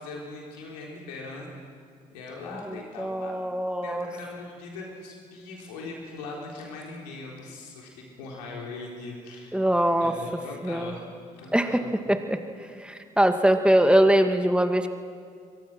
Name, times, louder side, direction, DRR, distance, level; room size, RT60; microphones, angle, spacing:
voice 1, 0.0-1.5 2.1-3.4 3.8-9.6 10.0-11.0 11.3-11.9, left 3 dB, 80° left, -1 dB, 4.0 m, -40 dB
voice 2, 2.7-4.1 9.5-10.1 10.6-10.9 11.5-11.8 12.1-12.4 12.8-14.9, right 1 dB, 5° right, 6 dB, 2.3 m, -22 dB
28.0 x 23.5 x 6.3 m, 2.2 s
hypercardioid pair, 40°, 21 cm